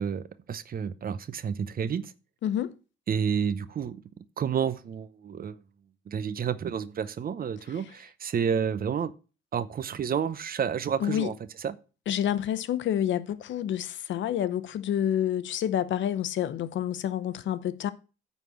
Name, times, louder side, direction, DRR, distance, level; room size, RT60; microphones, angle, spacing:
voice 1, 0.0-2.1 3.1-4.0 4.4-5.6 6.1-9.1 9.5-11.8, right 7 dB, 45° right, 0.8 m, -30 dB
voice 2, 2.4-2.7 11.0-11.3 12.1-17.9, left 10 dB, 70° left, 0.8 m, -28 dB
9.3 x 4.2 x 7.1 m
cardioid pair, 90°, 20 cm